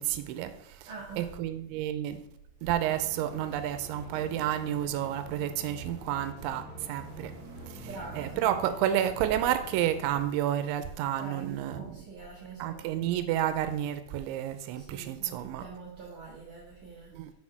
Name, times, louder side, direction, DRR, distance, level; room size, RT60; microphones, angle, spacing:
voice 1, 0.0-0.9 1.2-2.2 2.6-7.4 7.7-12.0 12.6-15.7 17.1-17.3, right 11 dB, 90° right, 10 dB, 3.0 m, -30 dB
voice 2, 0.9-1.2 7.8-8.5 11.2-12.8 14.8-17.1, right 4 dB, 60° right, -5 dB, 2.5 m, -44 dB
sound 1, 2.8-10.2, right 1 dB, 40° right, 1.3 m, -46 dB
6.5 x 6.4 x 5.9 m, 0.76 s
omnidirectional pair, 5.3 m